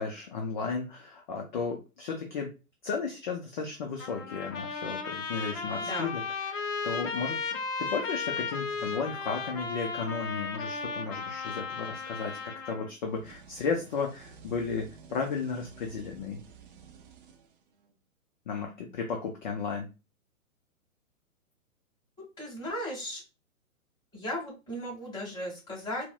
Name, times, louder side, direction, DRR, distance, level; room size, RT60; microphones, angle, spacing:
voice 1, 0.0-2.5 2.8-6.2 6.5-12.4 12.7-16.4 18.5-19.9, left 5 dB, 35° left, 3 dB, 0.4 m, -34 dB
Trumpet, 4.0-12.9, left 4 dB, 60° left, 0.8 m, -35 dB
voice 2, 5.8-6.1 22.2-23.2 24.1-26.1, left 1 dB, 10° left, -7 dB, 1.7 m, -36 dB
sound 1, 13.1-18.0, right 6 dB, 40° right, 0.5 m, -52 dB
4.0 x 2.0 x 2.3 m, 0.30 s
hypercardioid pair, 125°, 43 cm